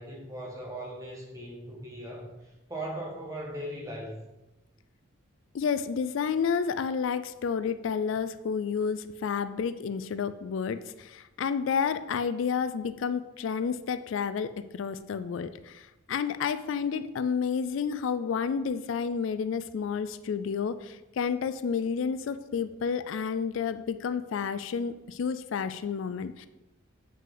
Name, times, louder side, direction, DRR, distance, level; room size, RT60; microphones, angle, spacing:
voice 1, 0.0-2.3 2.7-4.3, right 1 dB, 15° right, -2 dB, 1.4 m, -38 dB
voice 2, 5.5-26.5, left 6 dB, 70° left, 12 dB, 0.3 m, -30 dB
7.6 x 5.5 x 3.9 m, 1.0 s
head